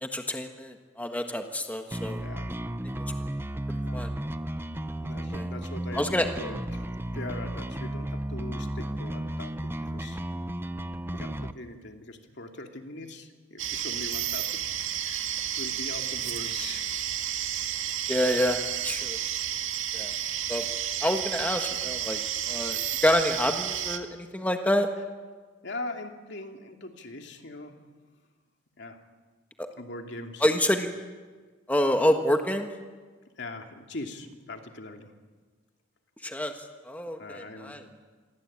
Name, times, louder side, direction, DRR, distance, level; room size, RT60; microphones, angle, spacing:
voice 1, 0.0-2.2 3.7-4.1 5.3-5.5 5.9-6.3 18.1-19.2 19.9-20.1 20.5-20.6 21.0-22.2 22.5-24.9 29.6-29.7 30.4-30.9 31.7-32.7 36.2-36.5 36.8-37.8, left 1 dB, 10° left, 5 dB, 1.5 m, -27 dB
voice 2, 1.9-2.5 3.8-4.1 5.0-6.0 6.4-6.8 7.1-10.2 11.1-15.2 15.6-16.9 25.6-27.8 28.8-29.0 29.8-30.4 33.4-35.1 37.2-37.9, left 2 dB, 55° left, 4 dB, 2.7 m, -41 dB
sound 1, 1.9-11.5, right 1 dB, 10° right, 0.7 m, -34 dB
sound 2, 13.6-24.0, right 10 dB, 70° right, 2.0 m, -31 dB
28.0 x 23.0 x 8.8 m, 1.4 s
head